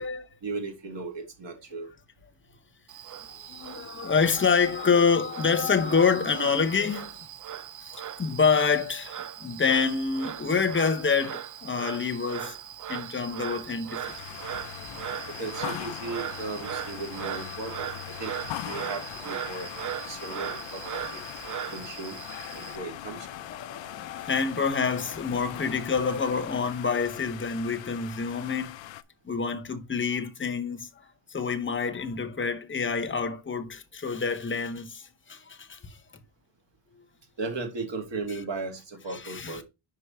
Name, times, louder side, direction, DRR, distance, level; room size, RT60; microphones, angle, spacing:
voice 1, 0.4-1.9 14.8-15.0 15.3-18.3 18.6-21.2 21.7-22.2 22.5-23.5 37.4-39.6, right 3 dB, 65° right, 2.1 m, -36 dB
Frog, 2.9-22.8, right 10 dB, 45° right, 0.4 m, -39 dB
voice 2, 3.5-7.3 7.8-7.9 8.2-12.6 12.9-14.1 20.3-20.5 22.3-28.8 29.2-30.9 31.3-36.0 38.3-38.4 39.1-39.6, left 5 dB, 25° left, 0.7 m, -27 dB
sound 1, 14.0-29.0, left 13 dB, 70° left, 0.6 m, -40 dB
5.4 x 4.7 x 4.2 m
wide cardioid pair, 130°, 47 cm